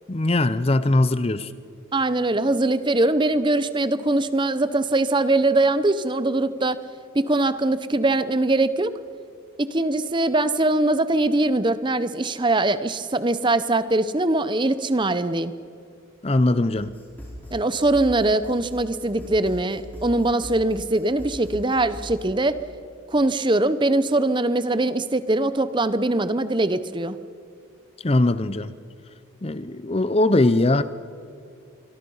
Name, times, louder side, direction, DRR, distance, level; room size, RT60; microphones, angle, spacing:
voice 1, 0.1-1.5 16.2-16.9 28.0-28.7 29.4-30.8, left 2 dB, 25° left, 14 dB, 0.6 m, -20 dB
voice 2, 1.9-6.8 7.1-8.9 9.6-15.5 17.5-22.6 23.1-27.2, right 2 dB, 20° right, 13 dB, 0.7 m, -22 dB
sound 1, 16.7-22.2, equal, 10° left, 6.0 m, -41 dB
26.5 x 23.0 x 5.6 m, 2.3 s
head